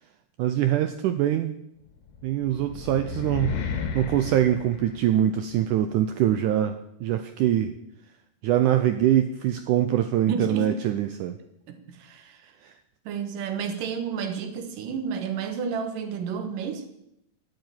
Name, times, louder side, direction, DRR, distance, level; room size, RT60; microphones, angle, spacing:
voice 1, 0.4-1.6 2.2-3.6 3.9-7.7 8.4-11.4 12.6-12.7, right 11 dB, 90° right, 9 dB, 1.8 m, -23 dB
sound 1, 2.1-5.5, left 6 dB, 65° left, 3.1 m, -33 dB
voice 2, 10.3-10.8 11.7-12.5 13.1-16.9, right 6 dB, 65° right, 7 dB, 2.8 m, -31 dB
12.5 x 7.8 x 9.1 m, 0.79 s
omnidirectional pair, 4.3 m